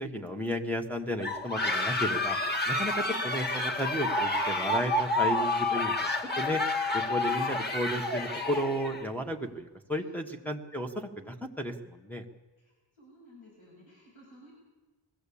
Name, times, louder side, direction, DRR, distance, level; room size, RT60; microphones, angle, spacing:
voice 1, 0.0-2.4 2.7-6.6 6.9-12.2, equal, 5° left, 0 dB, 1.5 m, -33 dB
sound 1, 1.2-9.0, left 2 dB, 20° left, 2.2 m, -29 dB
voice 2, 12.6-14.5, equal, 85° left, -4 dB, 7.3 m, -56 dB
21.0 x 15.0 x 8.6 m, 1.2 s
wide cardioid pair, 85°, 46 cm